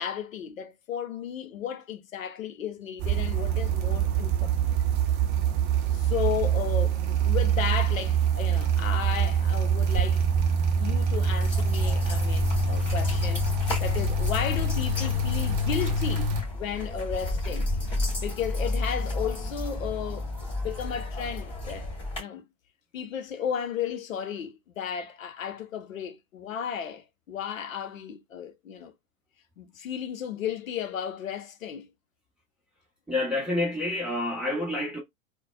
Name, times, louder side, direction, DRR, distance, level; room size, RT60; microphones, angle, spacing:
voice 1, 0.0-4.7 5.9-10.2 10.8-17.7 18.2-20.3 20.6-21.9 22.2-22.4 22.9-28.9 29.6-31.9, left 8 dB, 70° left, 0.7 m, -34 dB
sound 1, 3.0-16.4, right 5 dB, 30° right, 0.6 m, -25 dB
sound 2, 11.4-22.2, left 2 dB, 15° left, 2.2 m, -33 dB
voice 2, 33.1-35.0, left 2 dB, ahead, 1.0 m, -28 dB
3.9 x 2.2 x 2.2 m
figure-of-eight pair, 105°, 42 cm